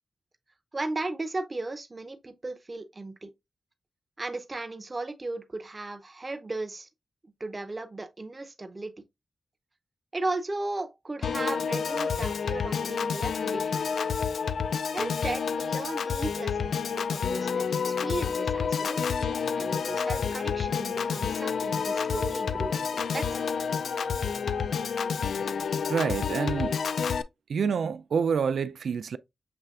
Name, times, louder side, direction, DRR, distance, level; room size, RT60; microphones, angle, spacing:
voice 1, 0.7-3.3 4.2-6.9 7.4-8.9 10.1-14.0 14.9-19.0 19.5-22.9 23.1-23.4, right 2 dB, 25° right, 0.6 m, -36 dB
Piano / Organ, 11.2-27.2, left 6 dB, 75° left, 0.3 m, -29 dB
voice 2, 25.9-26.8 27.5-29.2, right 6 dB, 75° right, 0.3 m, -27 dB
6.8 x 3.2 x 2.3 m
wide cardioid pair, 175°, 0 cm